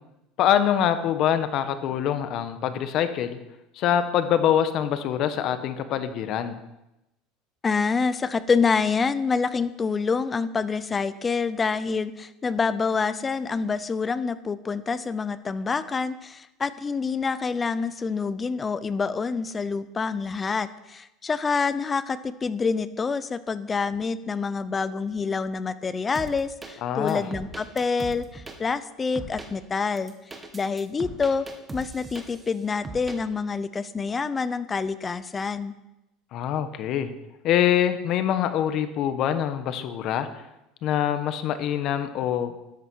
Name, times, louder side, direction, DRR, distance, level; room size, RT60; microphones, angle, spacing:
voice 1, 0.4-3.4 3.8-6.6 26.8-27.2 36.3-37.1 37.4-40.3 40.8-42.5, left 10 dB, 50° left, 10 dB, 1.3 m, -24 dB
voice 2, 7.6-30.1 30.5-31.4 31.7-35.7, left 5 dB, 20° left, 14 dB, 0.8 m, -27 dB
sound 1, 26.1-26.7 27.1-28.6 29.2-29.5 30.0-32.5 32.8-33.2, right 2 dB, 15° right, 2.0 m, -39 dB
13.5 x 11.5 x 6.4 m, 0.92 s
cardioid pair, 140°, 0 cm